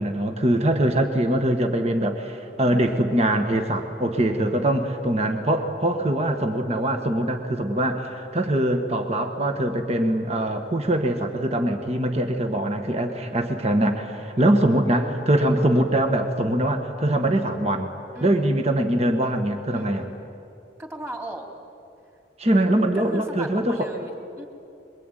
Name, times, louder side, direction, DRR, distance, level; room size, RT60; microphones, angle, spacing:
voice 1, 0.0-17.9 18.2-20.1 22.4-23.9, right 1 dB, 35° right, 5 dB, 1.5 m, -23 dB
voice 2, 13.1-13.5 18.1-18.5 19.7-20.2 20.8-21.5 22.9-24.5, right 1 dB, 15° right, 2 dB, 3.0 m, -38 dB
26.5 x 22.0 x 9.2 m, 2.7 s
head